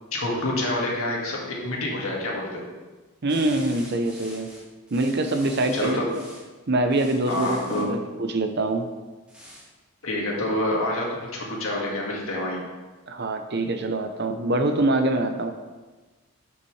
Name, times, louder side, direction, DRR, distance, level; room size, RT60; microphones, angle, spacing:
voice 1, 0.1-2.6 5.7-6.1 7.3-7.9 10.0-12.6, left 1 dB, 75° left, -3 dB, 1.9 m, -27 dB
voice 2, 3.2-4.5 4.9-6.2 6.7-8.8 13.1-15.5, right 2 dB, 50° right, 7 dB, 0.6 m, -24 dB
sound 1, 3.3-6.5 6.9-7.9 9.3-9.7, equal, 5° right, 1.2 m, -45 dB
9.9 x 5.7 x 3.2 m, 1.3 s
head